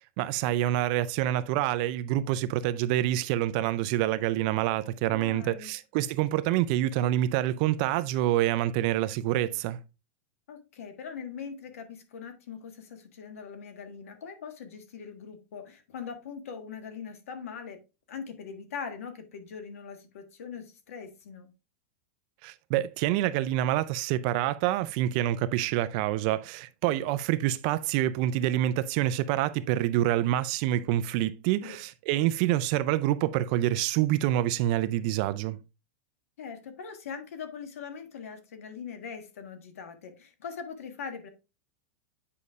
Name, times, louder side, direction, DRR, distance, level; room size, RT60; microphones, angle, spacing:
voice 1, 0.2-9.8 22.4-35.6, right 13 dB, 40° right, 0.3 m, -27 dB
voice 2, 5.1-5.7 10.5-17.8 18.1-21.5 26.9-27.1 31.6-31.8 36.4-41.3, left 6 dB, 85° left, 1.4 m, -41 dB
8.3 x 5.3 x 2.4 m
supercardioid pair, 165°, 7 cm